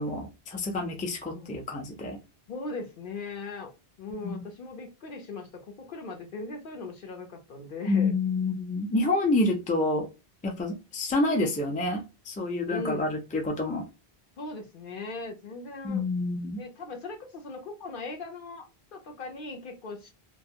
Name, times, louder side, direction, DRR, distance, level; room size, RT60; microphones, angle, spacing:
voice 1, 0.0-2.2 4.2-4.3 7.9-10.1 10.4-13.9 15.8-16.6, left 2 dB, 10° left, 0.4 m, -28 dB
voice 2, 1.3-1.7 2.5-3.7 4.0-8.2 12.7-13.1 14.4-16.0 16.6-20.1, left 3 dB, 60° left, 0.8 m, -39 dB
2.3 x 2.1 x 2.6 m
omnidirectional pair, 1.0 m